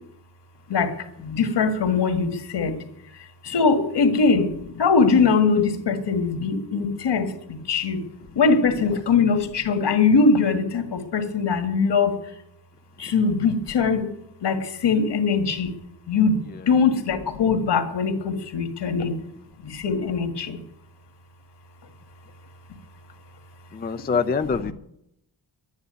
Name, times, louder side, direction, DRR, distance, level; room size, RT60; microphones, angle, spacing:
voice 1, 0.7-2.8 3.4-8.0 8.4-12.1 13.0-14.1 14.4-15.7 16.1-16.4 16.7-19.1 19.6-20.6, left 4 dB, 70° left, 7 dB, 2.0 m, -21 dB
voice 2, 23.7-24.7, left 5 dB, 25° left, 9 dB, 0.5 m, -26 dB
11.5 x 9.7 x 9.2 m, 0.78 s
wide cardioid pair, 165°, 43 cm